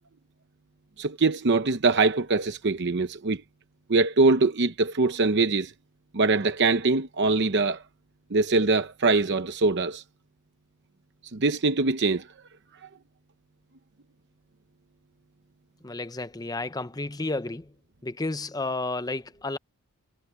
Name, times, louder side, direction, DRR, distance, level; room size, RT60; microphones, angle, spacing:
voice 1, 1.0-3.4 3.9-5.7 6.1-7.8 8.3-10.0 11.3-12.3, right 3 dB, 50° right, 0.8 m, -23 dB
voice 2, 15.8-17.7 18.0-19.6, left 2 dB, 15° left, 0.8 m, -32 dB
head